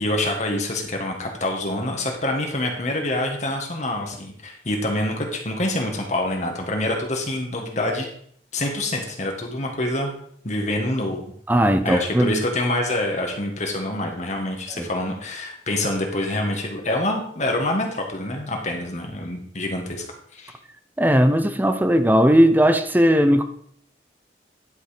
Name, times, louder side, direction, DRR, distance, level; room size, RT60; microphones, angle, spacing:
voice 1, 0.0-8.1 8.5-10.1 10.4-11.3 11.8-20.0 20.3-20.5, left 1 dB, 40° left, 2 dB, 1.6 m, -26 dB
voice 2, 11.5-12.4 14.7-14.8 21.0-23.4, equal, 10° right, 9 dB, 0.7 m, -17 dB
11.0 x 5.4 x 5.0 m, 0.64 s
head